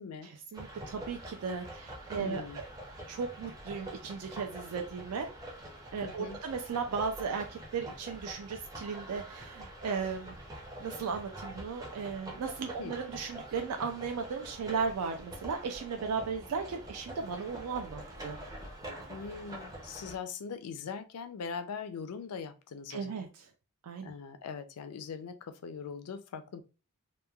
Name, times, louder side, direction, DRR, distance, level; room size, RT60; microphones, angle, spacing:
voice 1, 0.2-2.6 3.1-5.3 5.9-10.4 10.8-18.4 22.9-23.4 23.8-24.1, right 5 dB, 80° right, 0.4 m, -36 dB
sound 1, 0.5-20.2, right 1 dB, 15° right, 0.5 m, -46 dB
voice 2, 2.2-2.6 6.0-6.4 12.8-12.9 19.1-23.2 24.0-26.6, left 6 dB, 85° left, 0.4 m, -41 dB
3.0 x 2.2 x 2.2 m
head